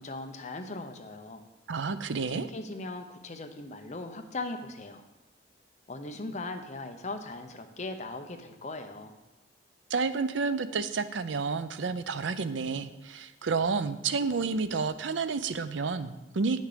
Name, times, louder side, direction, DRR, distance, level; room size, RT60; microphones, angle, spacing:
voice 1, 0.0-1.4 2.3-5.0 5.9-9.2, left 2 dB, 40° left, 6 dB, 0.8 m, -39 dB
voice 2, 1.7-2.5 9.9-16.6, right 4 dB, 80° right, 12 dB, 0.5 m, -30 dB
9.5 x 6.5 x 5.0 m, 1.0 s
head